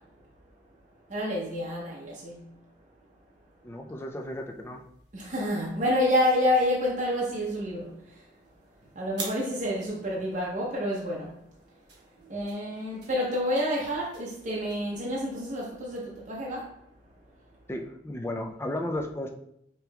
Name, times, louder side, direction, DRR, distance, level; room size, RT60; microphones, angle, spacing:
voice 1, 1.1-2.4 5.1-7.9 9.0-11.3 12.3-16.6, left 1 dB, 45° right, 0.7 m, -28 dB
voice 2, 3.6-4.8 17.7-19.3, left 1 dB, 15° left, 0.4 m, -34 dB
sound 1, 4.1-14.9, right 3 dB, 70° right, 1.0 m, -49 dB
5.1 x 2.9 x 2.3 m
head